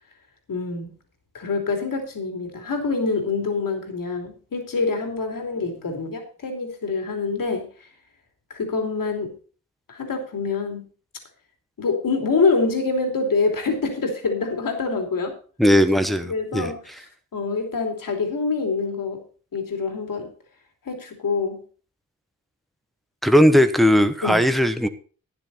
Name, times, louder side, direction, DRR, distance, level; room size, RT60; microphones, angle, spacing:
voice 1, 0.5-0.9 1.3-7.6 8.5-9.3 9.9-10.8 11.8-15.3 16.3-16.8 17.3-19.2 19.5-20.3 20.8-21.6 24.2-24.4, left 4 dB, 70° left, 4 dB, 3.1 m, -25 dB
voice 2, 15.6-16.7 23.2-24.9, equal, ahead, 8 dB, 1.2 m, -18 dB
12.5 x 10.0 x 4.2 m, 0.39 s
cardioid pair, 80°, 35 cm